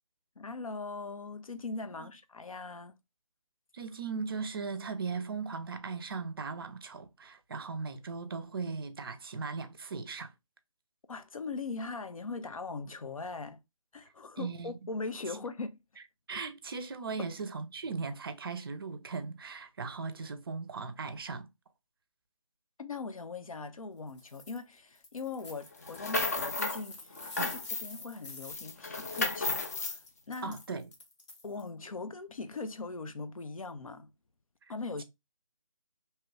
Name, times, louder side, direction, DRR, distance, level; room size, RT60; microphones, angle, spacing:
voice 1, 0.4-2.9 11.1-13.6 13.9-15.8 22.8-30.6 31.4-34.1 34.7-35.0, left 4 dB, 80° left, 0.6 m, -40 dB
voice 2, 3.7-10.3 14.4-14.7 16.3-21.5 27.4-27.6 30.4-30.9 34.6-34.7, right 4 dB, 45° right, 0.5 m, -38 dB
sound 1, 24.1-24.6 25.0-31.7, left 2 dB, 55° left, 1.0 m, -50 dB
sound 2, 25.8-26.8 27.2-28.1 28.4-30.0, left 3 dB, 30° left, 0.4 m, -33 dB
2.9 x 2.3 x 3.1 m
figure-of-eight pair, 155°, 17 cm